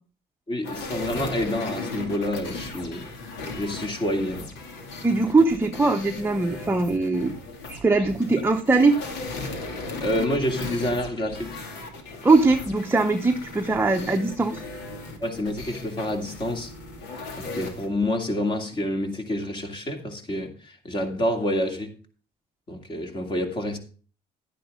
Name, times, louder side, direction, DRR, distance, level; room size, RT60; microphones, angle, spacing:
voice 1, 0.5-3.1 3.6-4.5 10.0-11.6 15.2-16.7 17.4-21.9 22.7-23.8, left 1 dB, 30° left, 2.6 m, -28 dB
sound 1, 0.6-17.9, left 3 dB, 90° left, 2.6 m, -37 dB
voice 2, 5.0-7.3 7.7-9.0 12.2-14.6, right 3 dB, 15° right, 0.8 m, -21 dB
11.0 x 10.0 x 3.7 m
cardioid pair, 110°, 17 cm